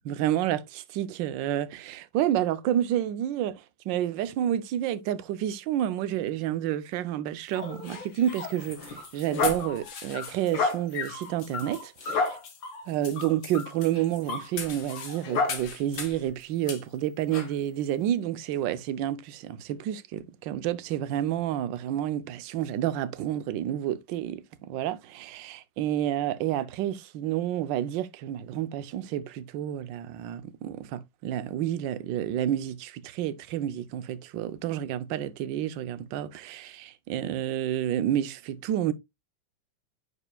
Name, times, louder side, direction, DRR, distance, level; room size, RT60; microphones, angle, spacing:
voice 1, 0.1-3.5 3.9-12.4 12.9-38.9, right 11 dB, 70° right, 1.2 m, -29 dB
sound 1, 7.5-16.2 16.7-16.8 17.3-17.5, left 4 dB, 60° left, 2.1 m, -32 dB
9.8 x 5.0 x 2.2 m
omnidirectional pair, 2.4 m